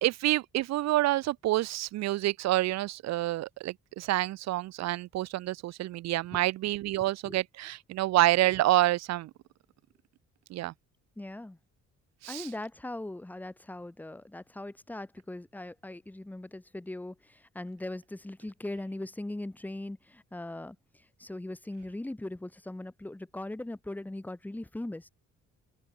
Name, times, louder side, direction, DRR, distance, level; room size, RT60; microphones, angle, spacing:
voice 1, 0.0-9.3 10.5-10.7 12.2-12.5, right 16 dB, 65° right, 0.4 m, -28 dB
voice 2, 11.2-11.6 12.3-20.8 21.2-25.1, left 1 dB, 5° left, 0.7 m, -40 dB
open air
cardioid pair, 90°, 30 cm